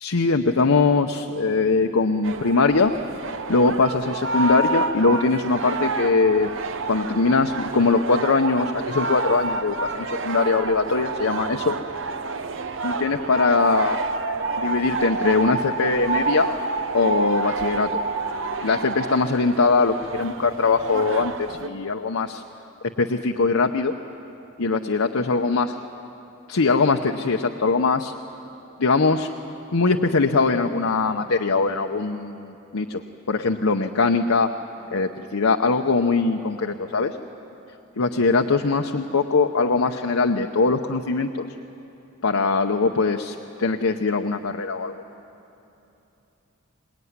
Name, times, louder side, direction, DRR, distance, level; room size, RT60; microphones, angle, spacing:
voice 1, 0.0-2.9 3.5-6.5 6.8-11.7 12.8-14.0 14.6-16.5 16.9-18.0 18.6-22.4 23.0-23.9 24.6-25.7 26.5-28.1 28.8-29.3 29.7-33.0 33.3-34.5 34.9-37.2 38.0-41.5 42.2-44.9, left 4 dB, 85° left, 5 dB, 0.8 m, -21 dB
sound 1, 2.2-21.7, right 4 dB, 60° right, 0.9 m, -30 dB
sound 2, 13.6-18.5, right 3 dB, 40° right, 2.9 m, -28 dB
25.0 x 20.5 x 9.6 m, 2.9 s
head